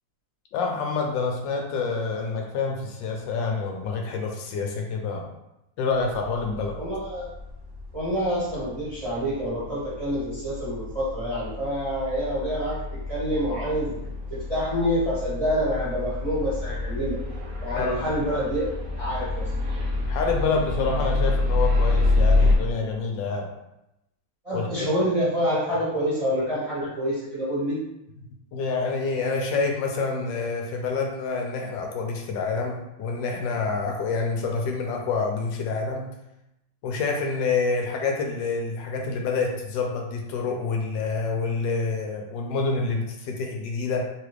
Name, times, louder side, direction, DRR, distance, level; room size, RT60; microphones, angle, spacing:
voice 1, 0.5-5.3 5.8-6.8 17.8-18.0 20.1-23.5 24.5-24.7 28.5-36.1 36.8-44.0, left 4 dB, 80° left, 1 dB, 1.2 m, -27 dB
sound 1, 6.2-22.5, left 2 dB, 85° right, 0.4 m, -28 dB
voice 2, 6.8-7.3 7.9-12.8 13.1-14.0 14.3-17.2 17.6-18.7 19.0-19.4 24.4-27.8, equal, 25° right, -10 dB, 1.0 m, -27 dB
3.5 x 2.4 x 3.1 m, 0.87 s
omnidirectional pair, 2.0 m